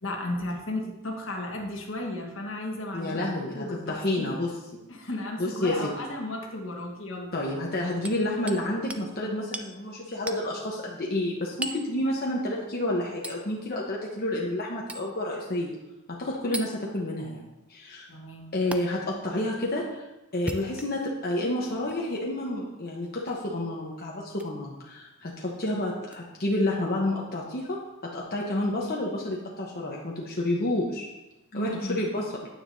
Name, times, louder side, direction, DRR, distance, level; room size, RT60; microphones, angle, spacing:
voice 1, 0.0-3.2 3.5-4.4 4.9-7.3 18.1-18.5 31.5-32.0, left 1 dB, 65° left, 1 dB, 1.4 m, -34 dB
voice 2, 2.9-4.5 5.4-5.9 7.3-15.7 16.1-18.1 18.5-20.1 20.3-31.1 31.5-32.3, left 1 dB, 45° left, -3 dB, 1.0 m, -30 dB
Hammer, 8.0-8.6 8.9-9.1 9.5-9.7 10.3-10.5 11.6-11.9 13.2-13.4 14.9-15.1 16.5-16.7 18.7-18.8 20.3-21.1 21.8-22.0 23.3-23.5 24.3-24.5 26.1-26.2, right 1 dB, 5° right, 0.4 m, -36 dB
9.3 x 9.2 x 2.7 m, 1.0 s
head